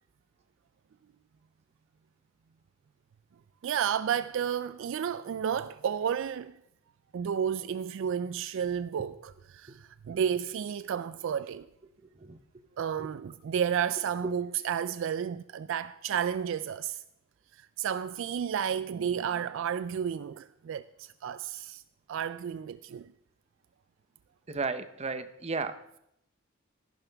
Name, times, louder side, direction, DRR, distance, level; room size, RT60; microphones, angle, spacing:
voice 1, 3.6-6.6 7.1-11.7 12.8-17.0 17.8-21.8 22.1-23.1, right 8 dB, 65° right, 0.3 m, -32 dB
voice 2, 24.5-25.8, right 4 dB, 30° right, 0.7 m, -33 dB
14.5 x 11.5 x 3.4 m
head